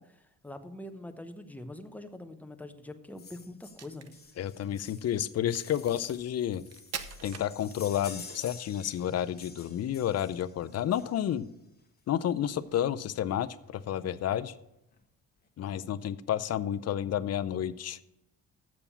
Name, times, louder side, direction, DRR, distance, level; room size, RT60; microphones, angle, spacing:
voice 1, 0.0-4.1, left 1 dB, 5° left, 8 dB, 0.8 m, -44 dB
sound 1, 3.2-11.5 12.6-12.7 13.0-13.1 13.3-13.5 13.8-14.4 14.9-15.0, left 4 dB, 30° left, 1.4 m, -50 dB
Crack, 3.6-8.2, right 7 dB, 50° right, 0.8 m, -45 dB
voice 2, 4.4-6.7 7.2-11.5 12.1-14.5 15.6-18.0, left 10 dB, 50° left, 15 dB, 0.5 m, -31 dB
7.1 x 6.8 x 7.0 m, 0.88 s
cardioid pair, 85°, 33 cm